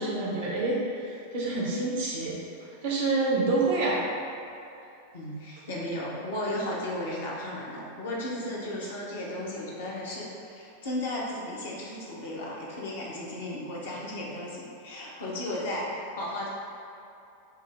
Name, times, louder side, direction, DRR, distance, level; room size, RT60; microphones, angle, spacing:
voice 1, 0.0-2.4 2.8-4.1, right 3 dB, 55° right, -4 dB, 1.0 m, -27 dB
voice 2, 5.1-16.5, left 1 dB, 60° left, -5 dB, 0.9 m, -35 dB
5.7 x 2.0 x 3.6 m, 2.8 s
figure-of-eight pair, 90°, 0 cm